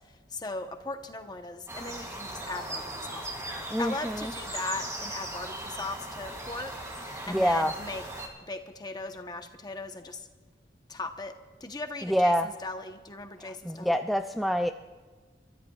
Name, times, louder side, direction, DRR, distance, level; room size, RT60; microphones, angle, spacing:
voice 1, 0.3-8.0 8.5-10.3 10.9-11.3 11.6-14.0, left 3 dB, 25° left, 6 dB, 0.9 m, -38 dB
sound 1, 1.7-8.3, right 1 dB, 20° right, 2.3 m, -38 dB
voice 2, 3.7-4.3 7.3-7.7 12.0-12.5 13.4-14.7, equal, ahead, 6 dB, 0.3 m, -26 dB
29.5 x 13.5 x 2.4 m, 1.4 s
head